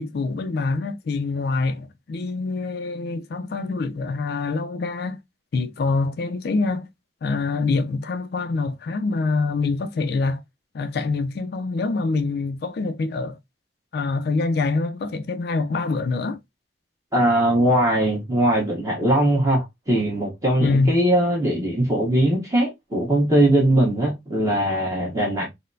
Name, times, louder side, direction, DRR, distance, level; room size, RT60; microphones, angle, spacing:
voice 1, 0.0-5.2 5.5-6.9 7.2-10.4 10.7-13.4 13.9-16.4 20.6-21.0, left 3 dB, 60° left, 0.4 m, -25 dB
voice 2, 17.1-25.5, right 1 dB, 15° right, 1.1 m, -20 dB
3.9 x 2.1 x 2.5 m
head